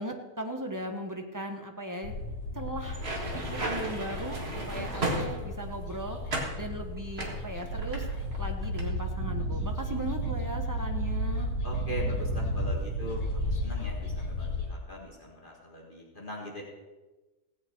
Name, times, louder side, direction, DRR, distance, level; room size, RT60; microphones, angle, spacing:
voice 1, 0.0-2.1 2.5-3.0 3.5-6.2 6.6-8.1 8.4-11.5, right 1 dB, 15° right, 3 dB, 0.9 m, -37 dB
sound 1, 2.0-14.7, left 2 dB, 85° left, 2.5 m, -35 dB
sound 2, 2.8-5.8 6.3-6.6 7.2-8.4 8.6-8.9, right 2 dB, 40° right, 2.0 m, -34 dB
sound 3, 7.7-13.7, right 6 dB, 75° right, 2.0 m, -35 dB
voice 2, 11.6-16.6, equal, 35° left, -3 dB, 2.0 m, -40 dB
16.5 x 8.4 x 4.5 m, 1.2 s
omnidirectional pair, 1.6 m